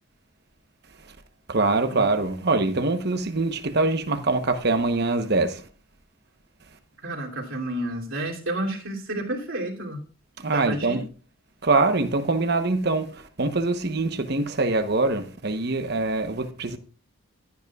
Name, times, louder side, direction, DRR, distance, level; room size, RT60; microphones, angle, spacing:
voice 1, 1.5-5.6 10.4-11.0 11.6-16.8, right 3 dB, 50° right, 1.0 m, -24 dB
voice 2, 7.0-10.0 10.5-11.0, right 1 dB, 75° right, 2.9 m, -30 dB
15.5 x 9.5 x 2.4 m
head